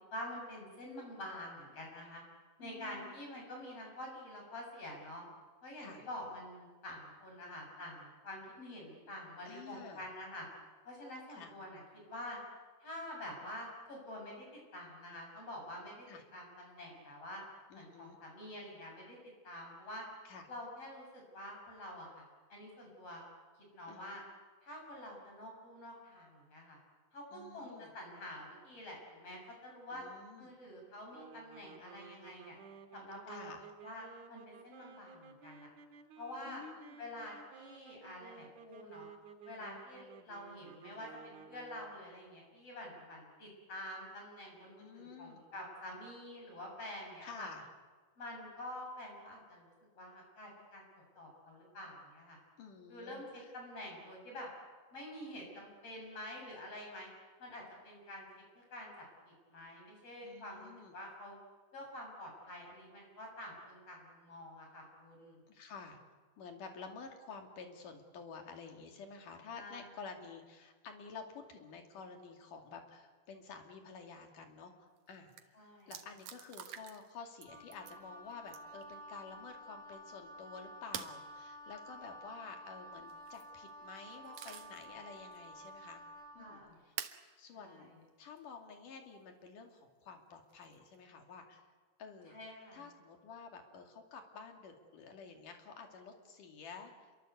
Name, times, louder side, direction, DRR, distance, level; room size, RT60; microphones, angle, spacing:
voice 1, 0.1-2.2 2.6-5.2 5.6-10.5 10.8-12.4 12.8-16.1 16.3-17.4 17.7-19.2 19.4-20.1 20.5-22.2 22.5-23.3 23.7-24.2 24.6-26.8 27.1-30.0 30.4-32.6 32.9-33.5 33.8-35.7 36.2-36.6 37.0-39.1 39.4-47.5 48.2-52.4 52.9-54.5 54.9-57.1 57.4-61.4 61.7-65.4 69.5-69.8 75.5-75.9 86.4-86.8 87.5-87.9 92.3-92.8, left 1 dB, 50° left, 0 dB, 8.0 m, -47 dB
voice 2, 2.6-3.1 5.8-6.1 9.5-10.0 11.3-11.5 16.1-16.2 17.7-18.2 20.3-20.4 23.9-24.1 27.3-27.9 29.9-30.5 33.3-33.7 36.5-37.0 44.8-45.4 47.2-47.7 52.6-53.5 60.2-60.9 65.5-66.0 66.4-75.6 75.9-86.0 86.3-86.9 87.4-87.9 88.2-91.6 92.0-92.3 92.7-97.1, left 5 dB, 85° left, 4 dB, 4.1 m, -51 dB
sound 1, 31.1-42.1, right 5 dB, 65° right, 2.9 m, -55 dB
sound 2, 75.0-75.1 75.3-75.4 75.9-77.1 77.4-78.0 78.5-78.8 80.9-81.2 83.1-83.5 84.0-84.9 85.3-85.4 87.0-87.2 88.4-88.5 90.5-91.0, right 11 dB, 85° right, 2.8 m, -46 dB
Wind instrument woodwind instrument, 77.4-86.6, equal, 10° right, 7.4 m, -52 dB
27.5 x 23.0 x 8.1 m, 1.4 s
omnidirectional pair, 3.6 m